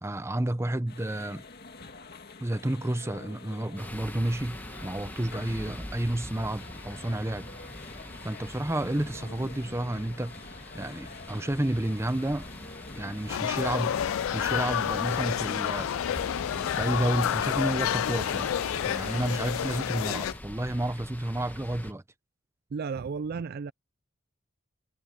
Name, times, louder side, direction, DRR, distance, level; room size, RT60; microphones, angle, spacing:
voice 1, 0.0-1.4 2.4-7.5 8.2-12.5 13.0-15.9 16.7-18.5 18.8-22.0, right 1 dB, 15° right, 0.7 m, -31 dB
sound 1, 0.9-20.4, left 3 dB, 50° left, 2.3 m, -47 dB
sound 2, 3.8-21.9, left 1 dB, 10° left, 1.6 m, -43 dB
sound 3, 13.3-20.3, left 10 dB, 75° left, 0.3 m, -29 dB
voice 2, 22.7-23.7, right 5 dB, 50° right, 0.3 m, -33 dB
head